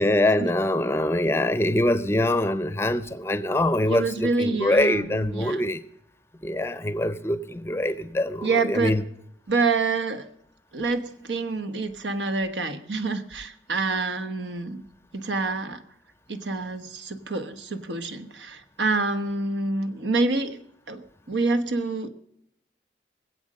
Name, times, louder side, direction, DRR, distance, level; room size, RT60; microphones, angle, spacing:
voice 1, 0.0-5.8 6.4-9.0, left 1 dB, 15° left, 0.5 m, -24 dB
voice 2, 3.9-5.6 8.4-9.0 9.5-10.2 10.7-14.8 15.1-15.8 16.3-20.6 20.9-22.1, right 3 dB, 90° right, 1.2 m, -27 dB
20.5 x 8.0 x 6.4 m
head